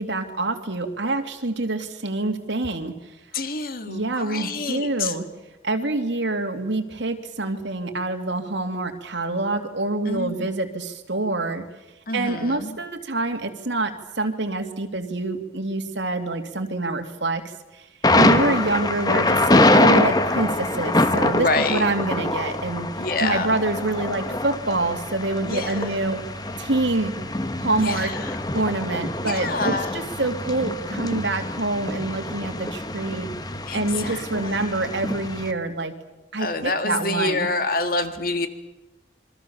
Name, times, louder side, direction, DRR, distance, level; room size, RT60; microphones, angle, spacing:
voice 1, 0.0-3.0 3.9-5.3 5.6-11.6 12.1-17.4 17.7-17.8 18.1-22.9 23.2-26.2 26.6-27.2 27.6-28.1 28.5-33.3 33.7-36.0 36.3-37.5, right 2 dB, 75° right, 4 dB, 2.7 m, -26 dB
voice 2, 3.3-5.2 10.1-10.5 12.1-12.8 18.4-18.7 21.4-21.9 23.0-23.6 25.4-25.9 27.8-28.4 29.2-30.0 33.7-34.7 36.4-38.5, left 3 dB, 50° left, 8 dB, 1.8 m, -27 dB
Thunder, 18.0-35.5, left 2 dB, 20° left, 1.2 m, -24 dB
27.5 x 23.5 x 7.1 m, 1.0 s
head